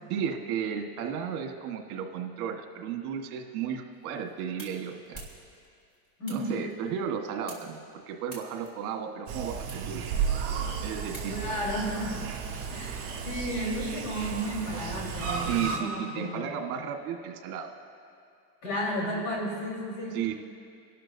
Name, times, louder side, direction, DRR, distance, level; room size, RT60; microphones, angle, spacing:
voice 1, 0.1-5.2 6.3-10.0 10.8-11.4 15.4-17.7 20.1-20.3, right 8 dB, 65° right, 3 dB, 1.5 m, -34 dB
sound 1, 3.9-11.7, right 1 dB, 20° left, 3.0 m, -51 dB
voice 2, 6.2-6.6 11.3-12.2 12.7-16.5 18.6-20.4, equal, 55° left, -2 dB, 4.2 m, -33 dB
sound 2, 9.3-15.8, right 6 dB, 40° right, 2.7 m, -33 dB
27.0 x 12.0 x 2.7 m, 2.4 s
supercardioid pair, 175°, 46 cm